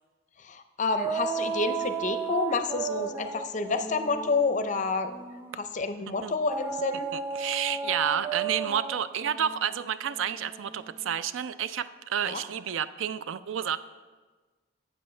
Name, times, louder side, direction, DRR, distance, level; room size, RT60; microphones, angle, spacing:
voice 1, 0.4-5.2 5.5-7.1 12.3-12.4, left 4 dB, 40° left, 9 dB, 0.5 m, -29 dB
sound 1, 1.0-5.6 6.5-11.2, right 5 dB, 10° right, 0.5 m, -35 dB
voice 2, 7.1-13.8, right 9 dB, 75° right, 14 dB, 0.4 m, -30 dB
11.5 x 7.9 x 3.2 m, 1.3 s
head